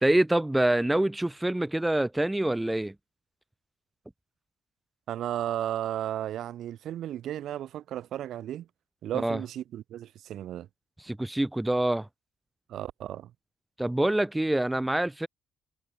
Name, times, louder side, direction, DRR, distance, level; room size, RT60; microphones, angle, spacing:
voice 1, 0.0-2.9 9.1-9.4 11.1-12.1 13.8-15.3, right 1 dB, 10° right, 0.4 m, -26 dB
voice 2, 5.1-8.7 9.0-10.7 12.7-13.3, right 11 dB, 75° right, 1.0 m, -34 dB
cardioid pair, 80°, 0 cm